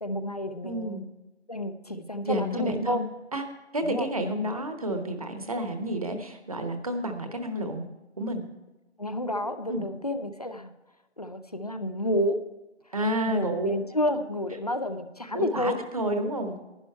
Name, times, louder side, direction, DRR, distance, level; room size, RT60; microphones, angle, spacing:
voice 1, 0.0-1.0 1.5-3.0 3.8-4.1 9.0-10.7 11.2-12.4 13.3-15.8, left 1 dB, 35° left, 10 dB, 0.6 m, -30 dB
voice 2, 0.6-1.1 2.2-3.1 3.3-3.4 3.7-7.8 8.2-8.5 9.7-9.8 12.9-13.7 15.3-16.6, right 1 dB, 30° right, 7 dB, 1.0 m, -30 dB
11.5 x 10.0 x 4.5 m, 1.1 s
figure-of-eight pair, 165°, 35 cm